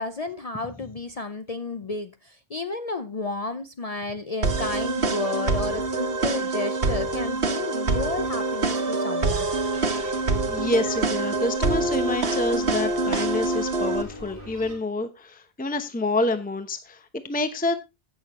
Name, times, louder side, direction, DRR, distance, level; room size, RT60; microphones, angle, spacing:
voice 1, 0.0-9.5, left 3 dB, 40° left, 0.7 m, -32 dB
sound 1, 4.4-14.0, right 3 dB, 70° right, 1.3 m, -25 dB
sound 2, 9.7-14.7, equal, 55° left, 7.6 m, -44 dB
voice 2, 10.5-17.7, left 2 dB, 10° left, 0.8 m, -28 dB
15.5 x 6.4 x 3.0 m
omnidirectional pair, 1.1 m